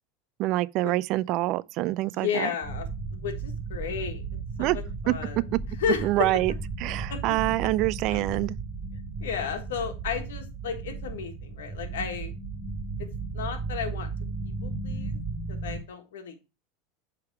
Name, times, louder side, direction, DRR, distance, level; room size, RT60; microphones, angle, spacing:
voice 1, 0.4-2.5 4.6-4.8 5.1-5.2 6.0-6.5 6.8-8.6, right 17 dB, 55° right, 0.3 m, -26 dB
voice 2, 2.0-4.2 4.6-5.4 5.8-6.3 7.1-7.2 8.1-8.3 9.2-12.3 13.3-14.1 14.6-15.2 15.5-16.5, left 7 dB, 85° left, 1.4 m, -33 dB
sound 1, 2.6-15.8, right 4 dB, 35° right, 1.8 m, -35 dB
8.0 x 3.5 x 4.6 m
supercardioid pair, 110°, 0 cm